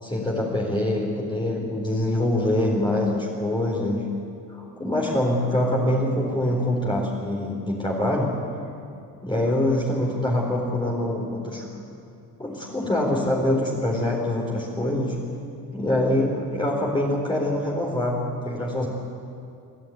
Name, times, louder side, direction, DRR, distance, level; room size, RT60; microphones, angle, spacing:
voice 1, 0.0-4.0 4.5-8.3 9.2-11.7 12.4-15.2 15.7-18.9, left 1 dB, 15° left, -3 dB, 4.0 m, -24 dB
25.5 x 16.5 x 9.4 m, 2.6 s
cardioid pair, 120°, 37 cm